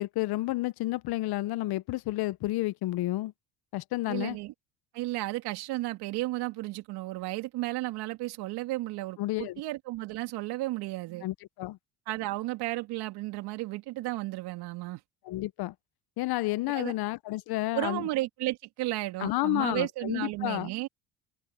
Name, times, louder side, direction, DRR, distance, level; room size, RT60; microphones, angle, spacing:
voice 1, 0.0-3.3 3.7-4.4 9.2-9.6 11.2-11.8 15.2-15.7 16.2-18.1 19.2-20.7, left 18 dB, 65° left, 1.2 m, -30 dB
voice 2, 4.1-4.5 4.9-11.3 12.1-15.0 16.7-16.9 17.7-20.9, right 18 dB, 70° right, 2.8 m, -33 dB
open air
hypercardioid pair, 70°, 41 cm